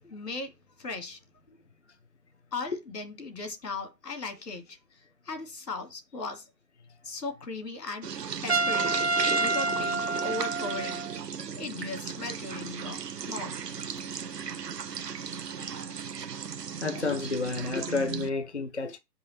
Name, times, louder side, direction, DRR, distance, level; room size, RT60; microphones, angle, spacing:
voice 1, 0.0-1.2 2.5-6.5 7.0-8.1 8.4-9.1 9.4-11.0 11.6-13.5, left 3 dB, 70° left, 2.3 m, -38 dB
sound 1, 8.0-18.3, right 7 dB, 70° right, 0.9 m, -36 dB
Trumpet, 8.5-11.2, right 3 dB, 40° right, 0.5 m, -28 dB
voice 2, 16.8-19.0, left 3 dB, 45° left, 0.5 m, -30 dB
5.5 x 5.5 x 4.2 m
figure-of-eight pair, 160°, 50 cm